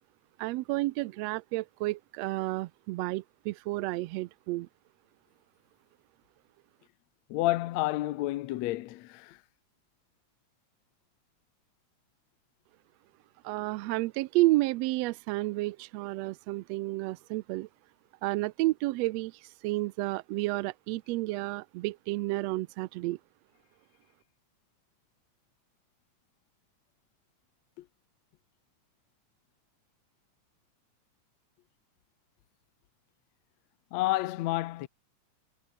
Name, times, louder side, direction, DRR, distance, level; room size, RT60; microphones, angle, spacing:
voice 1, 0.4-4.7 13.4-17.7 18.2-23.2, right 19 dB, 85° right, 1.5 m, -31 dB
voice 2, 7.3-9.4 27.8-27.9 33.9-34.9, left 17 dB, 70° left, 1.9 m, -30 dB
omnidirectional pair, 3.5 m